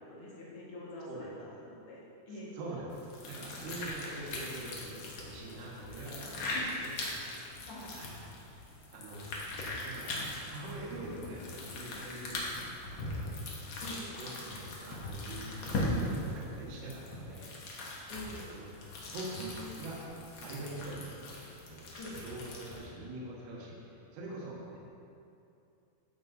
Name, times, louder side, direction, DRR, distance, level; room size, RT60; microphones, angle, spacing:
voice 1, 0.0-2.5 6.3-6.6 7.6-8.0 13.8-14.1 18.1-18.5 22.0-22.2, left 1 dB, 60° left, -6 dB, 1.5 m, -46 dB
voice 2, 2.5-2.9 3.2-6.9 7.9-8.1 8.9-9.3 9.8-12.4 12.9-13.7 14.1-17.5 18.5-18.7 19.1-21.2 21.7-24.8, right 2 dB, 85° right, -4 dB, 3.4 m, -44 dB
sound 1, 2.9-22.9, left 1 dB, 75° left, 1.5 m, -40 dB
12.5 x 8.1 x 2.6 m, 2.6 s
omnidirectional pair, 4.7 m